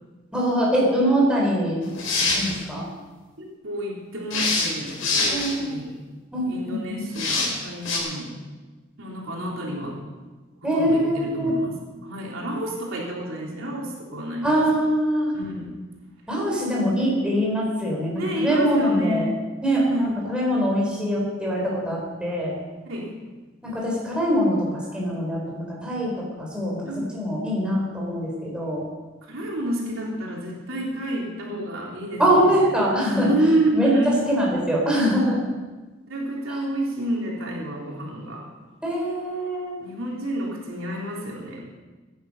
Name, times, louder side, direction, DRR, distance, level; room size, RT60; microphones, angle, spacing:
voice 1, 0.3-1.8 2.3-2.9 5.3-5.8 6.3-7.0 10.6-11.5 14.4-15.3 16.3-19.2 19.6-22.6 23.6-28.9 32.2-33.3 33.7-33.9 34.3-35.4 36.5-36.6 38.8-39.8, equal, 5° right, -4 dB, 4.3 m, -23 dB
sound 1, 1.8-2.5 4.3-5.5 7.1-7.5 7.8-8.0, left 3 dB, 85° left, 4.4 m, -24 dB
voice 2, 3.4-6.0 6.5-8.4 9.0-10.0 10.7-11.7 12.0-14.5 15.3-15.7 18.1-19.3 19.8-20.1 22.9-23.1 26.8-27.1 29.2-32.7 33.2-34.3 36.1-38.5 39.8-41.6, right 1 dB, 85° right, -3 dB, 3.5 m, -29 dB
16.5 x 10.5 x 5.5 m, 1.3 s
head